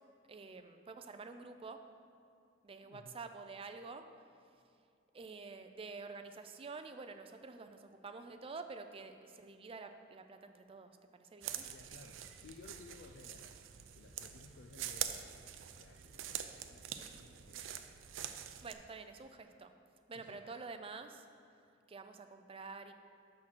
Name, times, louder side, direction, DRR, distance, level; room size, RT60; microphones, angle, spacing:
voice 1, 0.3-1.8 2.6-4.1 5.1-11.7 18.6-19.7 20.1-21.3 21.9-22.9, right 4 dB, 30° right, 7 dB, 0.4 m, -48 dB
voice 2, 2.8-3.2 11.7-17.9 20.1-20.6, left 3 dB, 60° left, 4 dB, 0.4 m, -58 dB
sound 1, 11.4-18.7, right 10 dB, 90° right, 0.5 m, -45 dB
6.2 x 5.9 x 6.1 m, 2.5 s
head